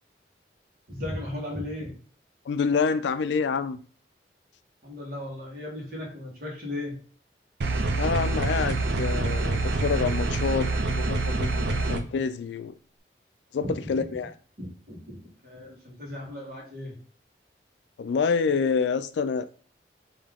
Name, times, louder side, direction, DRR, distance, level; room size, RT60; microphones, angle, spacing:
voice 1, 0.9-1.9 4.8-7.0 13.6-14.0 14.6-16.9, left 1 dB, 55° right, 1.4 m, -36 dB
voice 2, 2.5-3.8 8.0-12.7 13.5-14.3 18.0-19.5, left 5 dB, 80° left, 0.3 m, -27 dB
sound 1, 7.6-12.0, right 3 dB, 75° right, 0.5 m, -26 dB
3.6 x 2.8 x 3.4 m
head